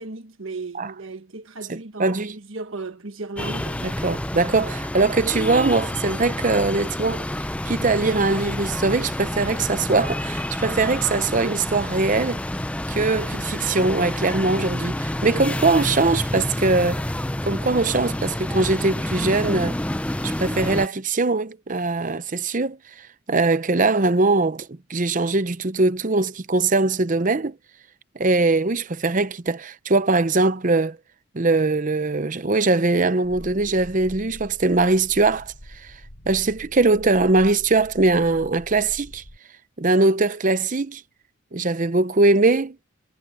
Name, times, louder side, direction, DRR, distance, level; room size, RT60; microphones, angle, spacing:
voice 1, 0.0-3.9, right 3 dB, 65° right, 1.6 m, -35 dB
voice 2, 1.7-2.4 3.8-7.3 7.7-12.4 12.9-17.0 17.4-19.8 20.2-22.8 23.3-27.6 28.2-31.0 31.3-35.5 36.3-39.2 39.8-41.0 41.5-42.8, right 3 dB, 35° right, 0.7 m, -21 dB
sound 1, 3.4-20.9, left 1 dB, 5° left, 0.4 m, -28 dB
sound 2, 33.2-39.4, equal, 80° left, 7.0 m, -43 dB
head